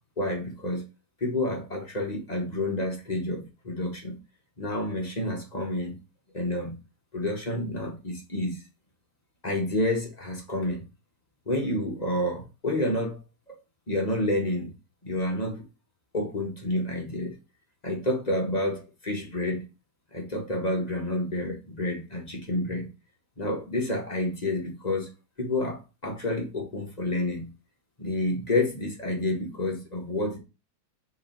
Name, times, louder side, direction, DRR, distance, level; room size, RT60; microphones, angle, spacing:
voice 1, 0.2-0.8 1.2-4.2 4.6-6.0 6.3-6.7 7.1-8.6 9.4-10.8 11.5-13.2 13.9-14.7 15.0-15.7 16.1-17.3 17.8-19.6 20.1-22.9 23.4-25.1 25.4-27.5 28.0-30.4, left 1 dB, 25° left, 0 dB, 1.5 m, -29 dB
5.0 x 4.2 x 4.6 m, 0.27 s
omnidirectional pair, 1.8 m